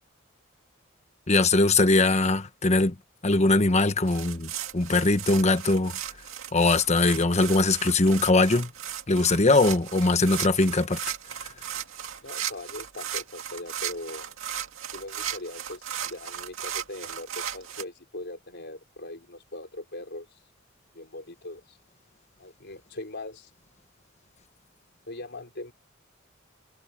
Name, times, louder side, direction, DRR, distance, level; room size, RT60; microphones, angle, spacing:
voice 1, 1.3-2.9 3.2-5.9 6.5-8.7 9.1-11.0, left 2 dB, 35° left, 1.2 m, -21 dB
sound 1, 4.1-17.8, right 10 dB, 75° right, 2.2 m, -36 dB
voice 2, 12.2-14.3 14.9-20.3 20.9-21.8 22.4-23.5 25.1-25.7, left 2 dB, 55° left, 4.9 m, -40 dB
head